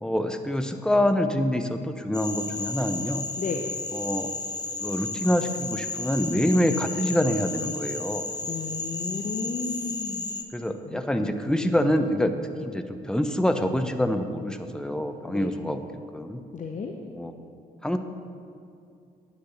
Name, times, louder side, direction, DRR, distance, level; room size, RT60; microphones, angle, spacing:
voice 1, 0.0-3.2 3.9-4.3 4.8-8.3 10.5-12.3 12.6-15.8 16.1-16.4 17.1-17.3 17.8-18.0, left 1 dB, 5° left, 7 dB, 0.9 m, -26 dB
Frog, 2.1-10.4, left 3 dB, 20° left, 1.2 m, -33 dB
voice 2, 3.4-3.7 8.5-10.3 10.8-11.4 15.3-15.5 16.5-16.9, left 4 dB, 40° left, 2 dB, 1.0 m, -33 dB
9.6 x 6.5 x 8.1 m, 2.5 s
hypercardioid pair, 45°, 21 cm